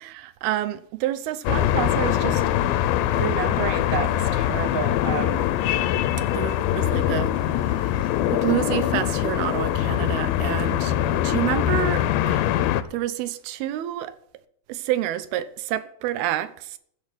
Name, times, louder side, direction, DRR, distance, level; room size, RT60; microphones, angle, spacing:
voice 1, 0.0-2.4 3.2-5.5 6.2-12.6 12.9-14.2 14.7-16.8, right 13 dB, 80° right, 2.6 m, -29 dB
sound 1, 1.4-12.8, left 11 dB, 80° left, 2.4 m, -23 dB
14.5 x 6.5 x 7.7 m
omnidirectional pair, 4.6 m